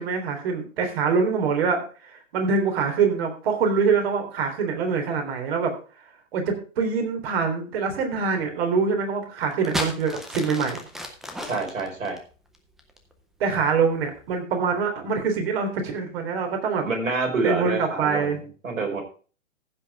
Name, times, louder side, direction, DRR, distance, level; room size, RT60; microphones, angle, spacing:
voice 1, 0.0-5.7 6.3-10.8 13.4-16.9 17.4-18.4, right 5 dB, 50° right, 4 dB, 3.6 m, -24 dB
sound 1, 9.4-13.1 13.9-14.3, equal, ahead, 0.4 m, -33 dB
voice 2, 11.4-12.2 16.8-19.0, right 3 dB, 80° right, 3 dB, 4.8 m, -27 dB
15.0 x 5.8 x 4.8 m, 0.39 s
hypercardioid pair, 135°, 39 cm